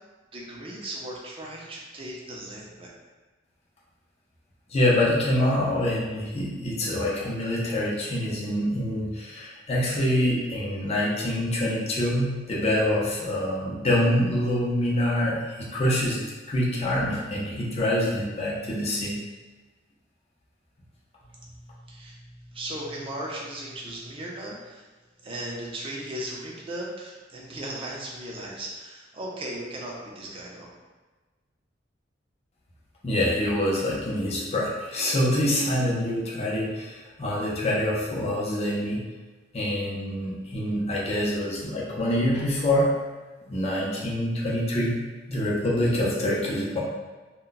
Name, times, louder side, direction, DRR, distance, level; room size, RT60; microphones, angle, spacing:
voice 1, 0.3-2.9 21.2-24.9 25.2-30.7, right 1 dB, 30° right, -3 dB, 0.6 m, -37 dB
voice 2, 4.7-16.2 16.5-19.2 33.0-39.1 39.5-42.9 43.5-45.0 45.3-46.8, left 1 dB, 35° left, -5 dB, 0.6 m, -25 dB
2.2 x 2.2 x 3.9 m, 1.3 s
head